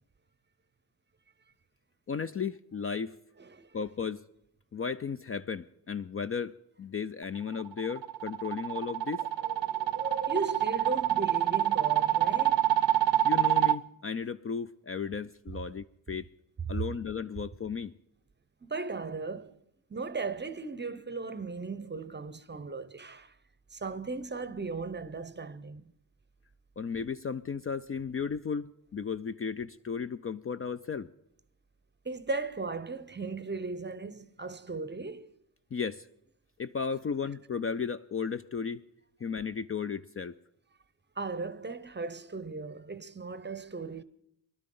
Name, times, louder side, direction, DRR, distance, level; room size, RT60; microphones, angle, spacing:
voice 1, 2.1-3.2 3.7-4.2 4.7-9.2 13.2-16.3 16.7-17.9 26.8-31.1 35.7-36.1 36.6-38.8 39.2-40.3, left 6 dB, 35° left, 0.4 m, -35 dB
voice 2, 3.4-3.8 9.2-12.7 18.6-19.6 19.9-23.3 23.7-25.9 32.0-35.3 41.2-44.0, right 3 dB, 25° right, 0.7 m, -37 dB
sound 1, 7.6-13.8, right 13 dB, 70° right, 0.6 m, -26 dB
19.5 x 12.0 x 3.8 m
cardioid pair, 55°, 43 cm